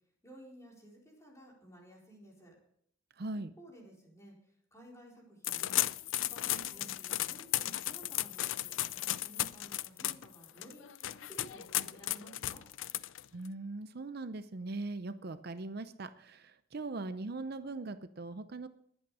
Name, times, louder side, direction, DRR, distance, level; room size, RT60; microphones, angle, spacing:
voice 1, 0.2-2.5 3.6-8.7 9.2-12.7, right 1 dB, 15° left, -2 dB, 4.4 m, -55 dB
voice 2, 3.2-3.5 13.3-18.7, right 2 dB, 55° right, 11 dB, 0.6 m, -40 dB
sound 1, 5.4-13.5, left 14 dB, 75° left, 0.5 m, -35 dB
21.0 x 8.7 x 4.9 m, 0.68 s
head